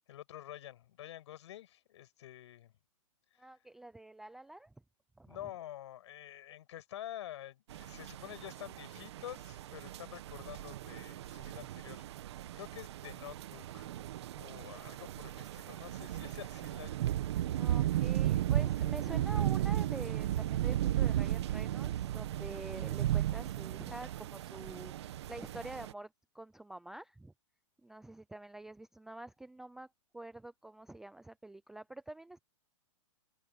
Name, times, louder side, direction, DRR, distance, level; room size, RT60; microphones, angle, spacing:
voice 1, 0.1-2.7 3.3-3.4 5.3-12.0 12.6-14.0 14.3-17.0, left 12 dB, 55° left, 7.9 m, -48 dB
voice 2, 3.4-4.7 5.2-5.4 17.6-26.1 26.3-27.3 27.8-32.4, right 2 dB, ahead, 0.4 m, -47 dB
sound 1, 7.7-25.9, right 12 dB, 55° right, 1.1 m, -35 dB
hypercardioid pair, 160°, 17 cm